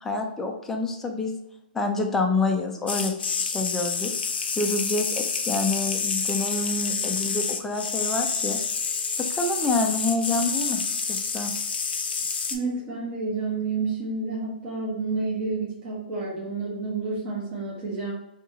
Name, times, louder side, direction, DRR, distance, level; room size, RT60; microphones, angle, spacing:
voice 1, 0.0-1.4 1.7-4.1 4.6-8.6 9.3-10.8 11.1-11.5, left 3 dB, 5° left, 2 dB, 0.3 m, -27 dB
sound 1, 2.9-12.6, left 5 dB, 80° left, 0.5 m, -28 dB
voice 2, 12.5-18.1, right 3 dB, 20° right, -7 dB, 0.9 m, -30 dB
2.8 x 2.7 x 3.5 m, 0.83 s
hypercardioid pair, 155°, 6 cm